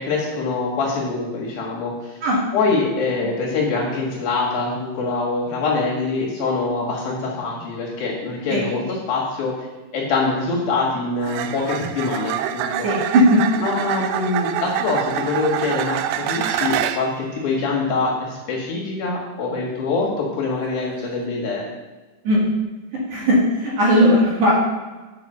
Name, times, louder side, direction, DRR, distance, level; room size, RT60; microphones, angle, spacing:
voice 1, 0.0-2.2 2.5-9.7 9.9-12.9 13.6-21.7, left 3 dB, 60° left, -2 dB, 3.2 m, -24 dB
sound 1, 8.7-8.9 11.2-17.2 20.9-21.1, right 11 dB, 85° right, 2.7 m, -26 dB
voice 2, 12.8-13.4 22.2-22.5 23.1-24.5, equal, 50° right, -5 dB, 3.1 m, -17 dB
8.0 x 5.7 x 6.7 m, 1.2 s
omnidirectional pair, 5.0 m